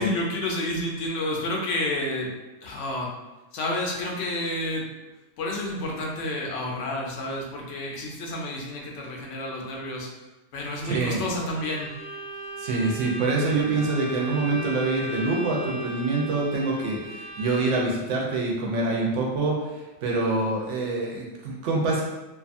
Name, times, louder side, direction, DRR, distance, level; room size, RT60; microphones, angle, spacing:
voice 1, 0.0-2.3 2.6-3.1 3.5-4.8 5.4-10.1 10.5-11.9 13.5-13.9, left 1 dB, 90° left, -1 dB, 0.9 m, -30 dB
voice 2, 10.8-11.2 12.6-19.6 20.0-22.0, right 3 dB, 85° right, -2 dB, 0.9 m, -25 dB
Bowed string instrument, 11.5-18.1, left 1 dB, 40° left, 1.1 m, -37 dB
2.6 x 2.3 x 2.5 m, 1.1 s
omnidirectional pair, 1.2 m